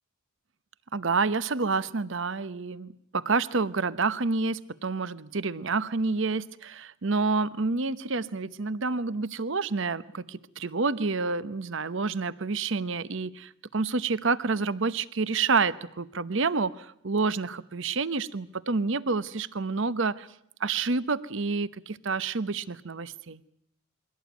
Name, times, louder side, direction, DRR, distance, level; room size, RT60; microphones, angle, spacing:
voice 1, 0.9-20.3 20.6-23.4, right 4 dB, 60° right, 17 dB, 0.8 m, -28 dB
23.0 x 17.0 x 9.2 m, 0.76 s
head